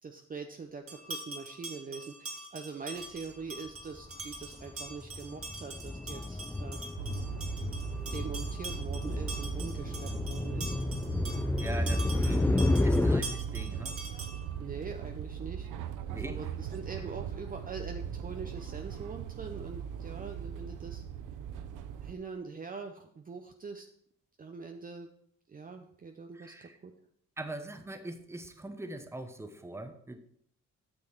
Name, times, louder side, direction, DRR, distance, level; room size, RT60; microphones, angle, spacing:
voice 1, 0.0-6.9 8.1-10.8 11.8-12.5 14.6-15.7 16.2-21.0 22.0-23.9 24.4-25.1 25.5-26.9, right 4 dB, 30° right, 5 dB, 0.7 m, -43 dB
sound 1, 0.9-14.5, right 2 dB, 50° right, 1.9 m, -44 dB
sound 2, 4.0-4.3 4.6-13.2, left 1 dB, 5° left, 0.5 m, -31 dB
sound 3, 7.0-22.1, right 8 dB, 85° right, 0.7 m, -40 dB
voice 2, 11.6-12.4 12.8-14.0 16.1-16.5 26.3-26.8 27.4-30.2, right 1 dB, 10° right, 8 dB, 1.0 m, -42 dB
8.7 x 6.3 x 4.5 m, 0.67 s
cardioid pair, 90°, 30 cm